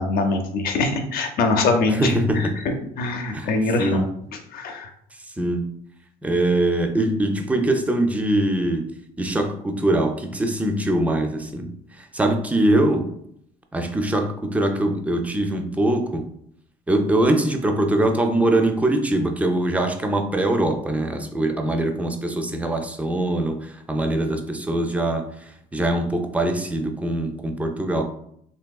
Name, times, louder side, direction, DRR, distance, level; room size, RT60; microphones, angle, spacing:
voice 1, 0.0-4.0 4.5-4.9, left 3 dB, 60° left, 5 dB, 0.6 m, -23 dB
voice 2, 1.9-2.5 3.3-3.5 3.8-4.1 5.4-5.7 6.2-8.9 9.2-13.1 13.7-16.2 16.9-25.3 25.7-28.0, right 1 dB, 10° right, 5 dB, 0.4 m, -22 dB
3.4 x 2.7 x 2.3 m, 0.70 s
cardioid pair, 110°, 17 cm